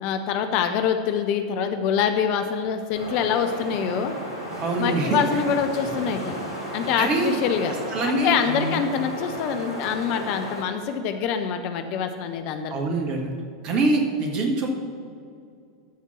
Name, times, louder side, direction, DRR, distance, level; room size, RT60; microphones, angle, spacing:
voice 1, 0.0-4.1 4.8-6.4 6.7-7.8 8.0-12.7, left 7 dB, 45° left, 7 dB, 0.7 m, -25 dB
Wind, 3.0-10.6, equal, 85° left, 2.0 m, -34 dB
voice 2, 4.6-5.2 7.0-7.3 7.9-8.8 12.7-13.3 13.6-14.7, right 3 dB, 40° right, 2 dB, 1.7 m, -24 dB
13.0 x 4.4 x 6.0 m, 2.3 s
figure-of-eight pair, 90°, 2 cm